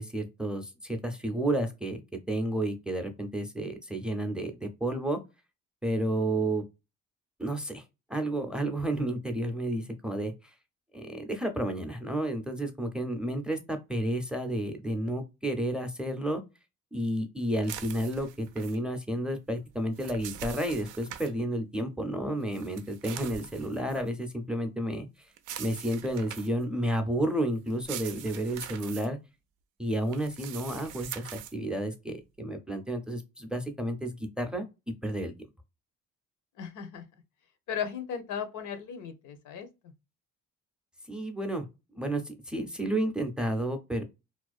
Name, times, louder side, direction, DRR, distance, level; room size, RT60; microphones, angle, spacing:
voice 1, 0.0-2.0 2.3-5.2 5.8-6.6 7.4-7.8 8.1-10.3 10.9-16.4 16.9-25.1 25.6-29.2 29.8-31.2 31.5-34.7 35.0-35.3 41.1-41.6 41.9-44.0, right 1 dB, 5° right, 0.5 m, -31 dB
sound 1, 17.6-18.8 19.7-21.3 22.5-24.1 25.4-26.6 27.7-29.1 30.1-31.5, right 9 dB, 85° right, 0.5 m, -42 dB
voice 2, 36.6-37.0 37.7-39.9, left 7 dB, 85° left, 0.6 m, -36 dB
2.4 x 2.1 x 2.4 m
cardioid pair, 90°, 30 cm